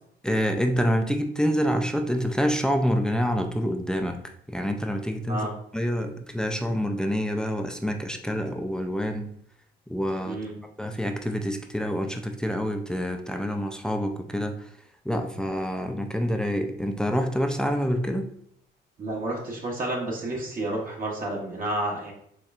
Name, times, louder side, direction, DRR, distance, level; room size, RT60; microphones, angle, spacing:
voice 1, 0.2-4.2 4.5-5.5 5.7-9.3 9.9-10.4 10.8-14.7 15.0-18.3, equal, 5° left, 4 dB, 0.4 m, -27 dB
voice 2, 19.0-22.1, right 1 dB, 45° right, -2 dB, 1.0 m, -30 dB
4.4 x 3.1 x 2.5 m, 0.68 s
cardioid pair, 90°, 20 cm